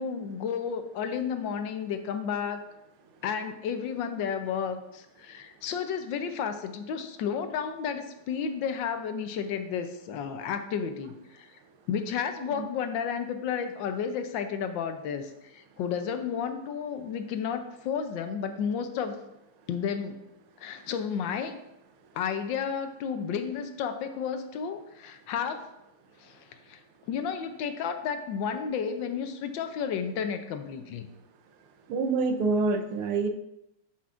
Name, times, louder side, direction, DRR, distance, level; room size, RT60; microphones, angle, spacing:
voice 1, 0.0-2.6 3.2-11.6 11.9-19.2 19.7-20.3 20.6-21.6 22.1-25.7 26.2-26.8 27.1-31.1, left 7 dB, 70° left, 8 dB, 1.3 m, -32 dB
voice 2, 31.9-33.3, right 3 dB, 80° right, 7 dB, 1.7 m, -26 dB
12.5 x 5.8 x 2.5 m, 0.87 s
omnidirectional pair, 2.4 m